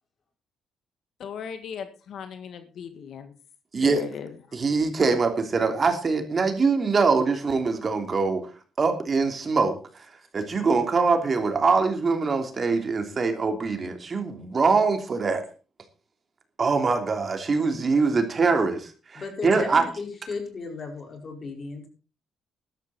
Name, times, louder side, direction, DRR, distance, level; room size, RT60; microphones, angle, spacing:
voice 1, 1.2-3.3 3.8-4.3, left 7 dB, 65° left, 9 dB, 1.8 m, -37 dB
voice 2, 3.7-4.0 4.5-8.5 8.8-10.0 10.3-15.5 16.6-19.9, right 4 dB, 40° right, 6 dB, 3.0 m, -23 dB
voice 3, 19.1-21.9, left 4 dB, 40° left, 4 dB, 5.1 m, -35 dB
13.5 x 12.5 x 4.3 m, 0.35 s
cardioid pair, 100°, 0 cm